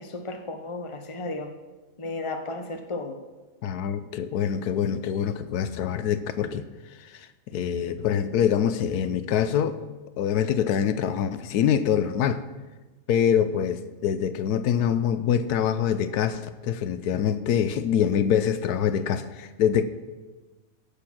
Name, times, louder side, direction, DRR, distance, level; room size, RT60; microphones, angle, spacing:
voice 1, 0.0-1.5 2.0-3.2, left 2 dB, 25° left, 6 dB, 0.9 m, -34 dB
voice 2, 3.6-6.7 7.0-9.8 10.2-12.4 13.1-19.8, left 8 dB, 85° left, 12 dB, 1.2 m, -25 dB
15.0 x 6.9 x 5.9 m, 1.2 s
omnidirectional pair, 1.6 m